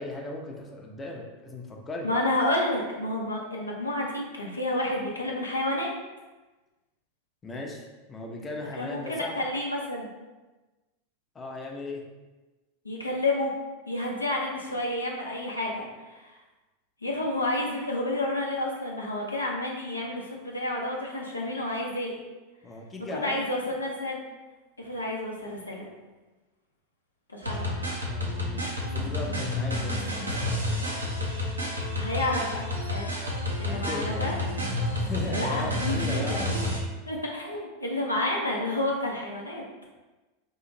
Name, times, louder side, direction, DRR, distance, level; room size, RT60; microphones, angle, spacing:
voice 1, 0.0-2.1 7.4-9.4 11.3-12.0 22.6-23.4 28.1-31.3 33.6-34.4 35.0-36.5, left 2 dB, 20° left, 0 dB, 0.6 m, -37 dB
voice 2, 2.0-5.9 8.8-10.1 12.8-13.5 13.9-16.3 17.0-22.2 23.2-24.2 24.8-25.9 27.3-27.6 32.0-33.2 33.6-34.4 35.3-36.6 37.1-39.6, left 1 dB, 85° left, -1 dB, 0.5 m, -30 dB
sound 1, 27.4-36.8, left 1 dB, 85° right, 0.6 m, -30 dB
2.8 x 2.4 x 3.9 m, 1.2 s
figure-of-eight pair, 85°, 0 cm